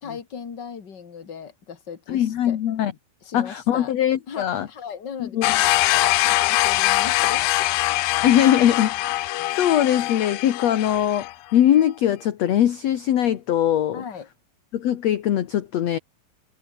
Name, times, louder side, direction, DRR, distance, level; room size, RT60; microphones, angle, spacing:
voice 1, 0.0-2.6 3.2-3.9 4.3-5.4 5.9-7.7 13.9-14.3, left 6 dB, 35° left, 2.8 m, -37 dB
voice 2, 2.1-2.9 3.3-4.7 5.2-5.5 8.2-14.0 14.7-16.0, left 11 dB, 60° left, 2.2 m, -21 dB
sound 1, 5.4-11.3, left 18 dB, 80° left, 2.4 m, -22 dB
omnidirectional pair, 4.1 m